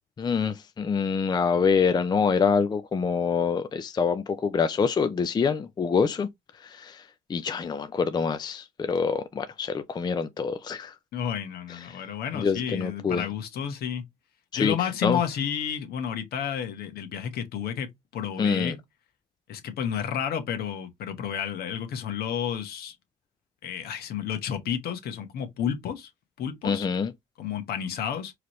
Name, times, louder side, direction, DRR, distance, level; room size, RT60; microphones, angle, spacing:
voice 1, 0.2-6.3 6.6-10.9 11.9-12.0 12.3-13.3 14.5-14.7 15.0-15.2 18.4-18.7 26.6-27.1, left 5 dB, 25° left, 0.5 m, -26 dB
voice 2, 11.1-14.0 14.5-18.8 19.5-23.0 23.6-26.1 26.4-26.9 27.4-28.3, left 8 dB, 65° left, 1.3 m, -31 dB
4.8 x 3.1 x 3.0 m
cardioid pair, 110°, 17 cm